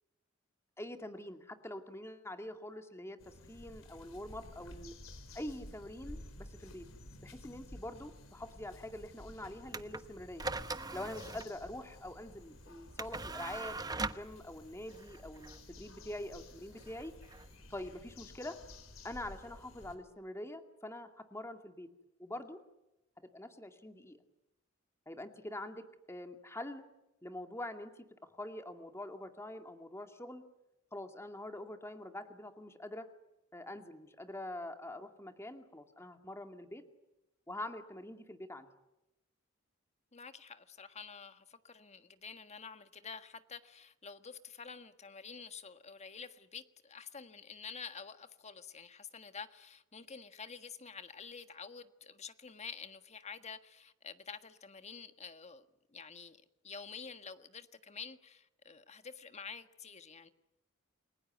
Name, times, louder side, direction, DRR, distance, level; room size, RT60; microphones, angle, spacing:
voice 1, 0.8-5.0 5.3-6.8 7.2-10.5 10.9-17.2 17.7-18.6 19.0-21.9 22.2-22.6 23.3-24.2 25.1-26.8 27.2-27.9 28.2-30.4 30.9-33.1 33.5-36.8 37.5-38.7, left 1 dB, 15° left, 2.3 m, -45 dB
sound 1, 3.2-20.0, left 1 dB, 75° left, 4.3 m, -53 dB
sound 2, 9.7-18.2, right 3 dB, 20° right, 1.0 m, -43 dB
voice 2, 40.1-55.7 55.9-60.3, left 6 dB, 35° left, 1.6 m, -49 dB
29.5 x 21.5 x 9.3 m
head